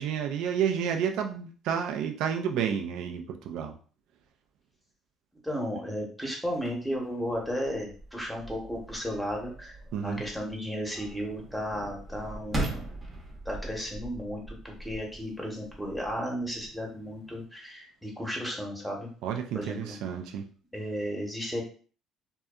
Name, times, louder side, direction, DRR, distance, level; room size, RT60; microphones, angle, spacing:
voice 1, 0.0-3.7 9.9-10.2 19.2-20.5, right 8 dB, 75° right, 4 dB, 0.4 m, -30 dB
voice 2, 5.4-9.8 10.0-12.7 13.4-19.1 19.5-20.0 20.7-21.6, equal, ahead, -1 dB, 0.9 m, -34 dB
sound 1, 6.5-17.4, right 1 dB, 30° right, 0.8 m, -41 dB
2.6 x 2.2 x 2.3 m, 0.41 s
cardioid pair, 95°, 0 cm